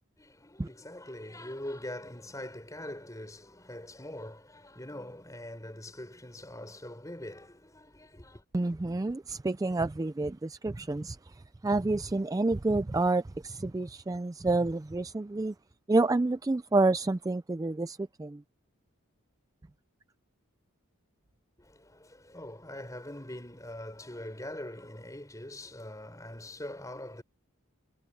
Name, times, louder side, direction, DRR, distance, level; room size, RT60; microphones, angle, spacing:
voice 1, 0.2-8.4 21.6-27.2, left 1 dB, 15° left, 5.0 m, -43 dB
voice 2, 8.5-15.5 15.9-18.4, right 2 dB, 15° right, 0.3 m, -29 dB
head